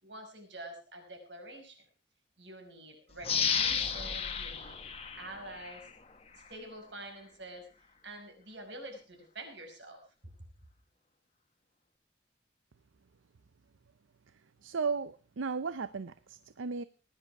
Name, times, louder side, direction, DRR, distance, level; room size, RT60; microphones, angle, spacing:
voice 1, 0.0-1.8 2.4-4.8 5.1-5.9 6.3-7.7 8.0-10.5, right 1 dB, 70° right, 5.5 m, -47 dB
sound 1, 3.2-5.9 6.4-6.5, left 7 dB, 30° left, 1.4 m, -32 dB
voice 2, 14.6-16.8, right 5 dB, 90° right, 0.6 m, -35 dB
19.0 x 11.0 x 4.7 m
head